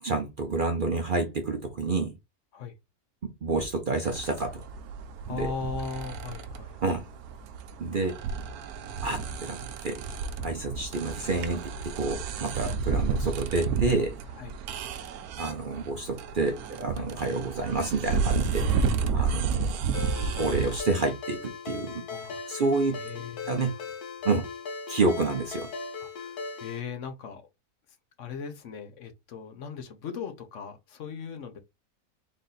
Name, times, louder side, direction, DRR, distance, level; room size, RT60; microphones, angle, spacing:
voice 1, 0.0-2.1 3.2-4.6 5.3-5.5 6.8-7.0 7.8-8.2 9.0-10.0 10.4-14.2 15.4-19.8 20.4-22.0 22.5-23.0 23.5-23.7 24.2-24.5 24.9-25.7, right 3 dB, 60° right, 0.5 m, -29 dB
sound 1, 4.0-20.8, right 5 dB, 80° right, 1.1 m, -31 dB
voice 2, 5.2-6.8 10.7-10.8 14.4-14.5 16.9-17.1 18.6-18.8 19.2-19.4 22.1-22.6 22.9-23.9 26.0-27.4 28.2-31.6, left 6 dB, 60° left, 1.0 m, -39 dB
Ringtone, 19.9-26.8, left 5 dB, 75° left, 1.4 m, -38 dB
3.9 x 2.6 x 3.8 m
omnidirectional pair, 1.6 m